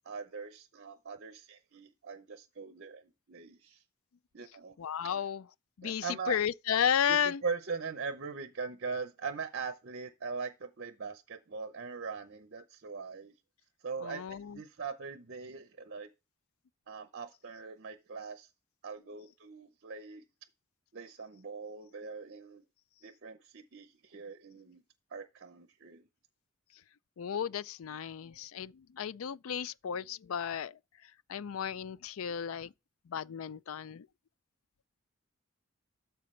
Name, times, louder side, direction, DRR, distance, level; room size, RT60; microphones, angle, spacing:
voice 1, 0.0-3.8 4.3-4.8 5.8-6.4 7.1-13.3 13.8-16.1 16.9-18.5 18.8-20.2 20.9-22.6 23.0-24.8 25.1-26.1, right 5 dB, 55° right, 0.7 m, -41 dB
voice 2, 4.8-5.4 5.8-7.4 14.0-14.6 27.2-30.7 31.3-32.7 33.1-34.0, left 8 dB, 70° left, 0.4 m, -33 dB
12.5 x 4.7 x 3.2 m
head